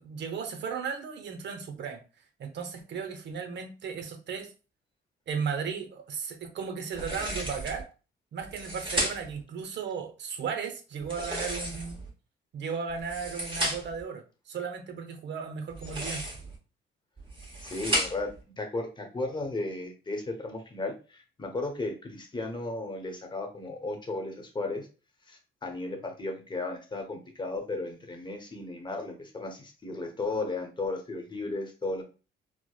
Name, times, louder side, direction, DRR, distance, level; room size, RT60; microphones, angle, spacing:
voice 1, 0.0-2.0 2.4-4.5 5.3-7.9 8.3-12.0 12.5-16.2, right 6 dB, 65° right, 0.8 m, -35 dB
sound 1, 6.9-7.8 8.4-9.4 11.0-12.1 12.9-14.0 15.7-16.6 17.2-18.4, right 1 dB, 25° right, 1.5 m, -33 dB
voice 2, 17.6-24.9 25.3-32.0, left 2 dB, 25° left, 0.9 m, -35 dB
4.5 x 2.1 x 2.3 m
cardioid pair, 90°, 20 cm